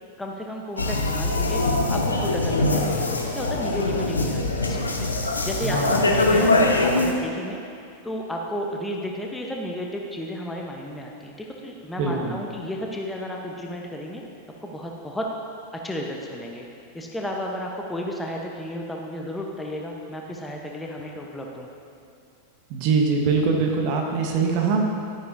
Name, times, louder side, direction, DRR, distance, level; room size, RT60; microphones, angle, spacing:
voice 1, 0.2-1.6 1.9-5.1 5.4-6.5 6.8-7.6 8.0-11.3 11.6-14.2 14.6-15.3 15.8-16.7 16.9-21.7, equal, 10° left, 0 dB, 1.0 m, -33 dB
sound 1, 0.8-7.1, left 2 dB, 75° left, 0.8 m, -22 dB
voice 2, 5.6-6.4 12.0-12.4 22.7-24.8, right 4 dB, 45° right, 1 dB, 1.3 m, -23 dB
12.5 x 9.5 x 2.7 m, 2.5 s
figure-of-eight pair, 90°, 0 cm